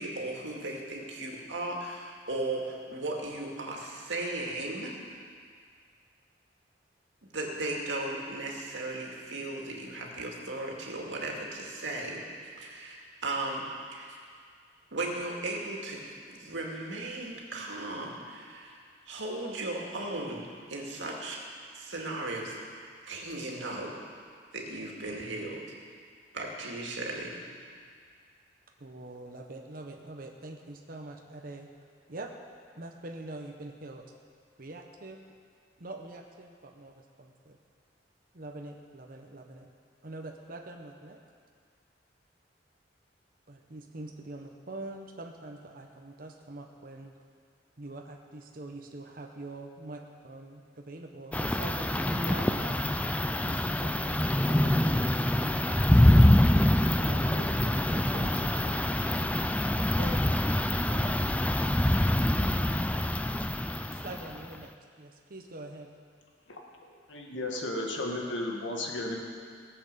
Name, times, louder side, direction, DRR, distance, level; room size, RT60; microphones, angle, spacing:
voice 1, 0.0-4.9 7.3-13.7 13.9-14.2 14.9-16.0 16.3-18.7 19.1-21.4 21.7-22.6 23.1-24.0 24.5-25.6 26.3-27.4, right 2 dB, 85° right, -1 dB, 2.3 m, -36 dB
voice 2, 28.8-31.7 32.1-32.3 32.8-34.0 34.6-35.2 35.8-37.6 38.3-39.7 40.0-41.2 43.5-47.1 47.8-52.7 53.4-55.7 57.0-58.9 60.0-61.1 63.9-65.9, right 2 dB, 50° right, 2 dB, 0.9 m, -44 dB
sound 1, 51.3-64.5, left 1 dB, 10° left, 0.4 m, -25 dB
voice 3, 67.1-69.2, left 1 dB, 90° left, 0 dB, 1.9 m, -34 dB
17.5 x 7.9 x 6.8 m, 2.1 s
head